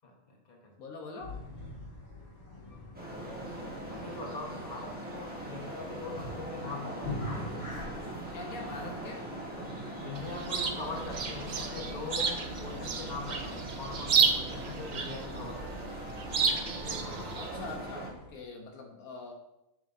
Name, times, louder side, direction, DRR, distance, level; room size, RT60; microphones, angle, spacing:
voice 1, 0.0-0.7 2.5-3.6 3.9-7.6 10.0-16.0 16.8-17.4, left 3 dB, 30° left, -1 dB, 1.3 m, -42 dB
voice 2, 0.8-1.4 8.3-9.3 17.4-19.3, left 3 dB, 80° left, 2 dB, 1.4 m, -43 dB
sound 1, 1.2-18.3, left 1 dB, 50° left, 1.9 m, -46 dB
Traffic noise roadway noise, 2.9-18.1, right 1 dB, 5° right, 1.4 m, -41 dB
Chirp tweet, 10.1-17.8, right 5 dB, 55° right, 0.5 m, -32 dB
7.3 x 6.6 x 2.7 m, 0.88 s
omnidirectional pair, 1.5 m